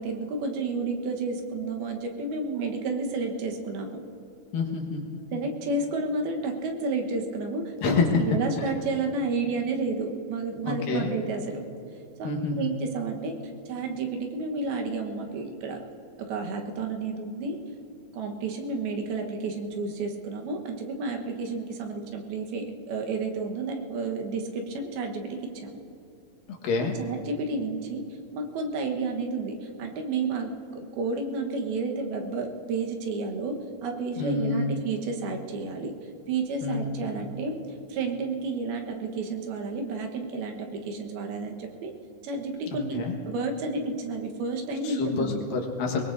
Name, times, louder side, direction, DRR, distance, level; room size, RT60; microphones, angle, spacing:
voice 1, 0.0-4.0 5.3-11.6 12.2-13.3 13.7-15.8 16.2-17.6 18.1-25.8 27.0-28.0 28.3-30.5 31.0-35.9 36.3-37.6 37.9-41.9 42.2-45.4, right 3 dB, 90° right, 2 dB, 3.2 m, -31 dB
voice 2, 4.5-5.0 5.3-5.4 7.8-8.2 10.6-11.1 12.2-12.7 26.5-26.9 34.2-34.7 36.6-36.9 42.9-43.2 44.8-46.1, left 4 dB, 70° left, 1 dB, 3.1 m, -27 dB
22.0 x 21.0 x 2.6 m, 2.8 s
omnidirectional pair, 4.2 m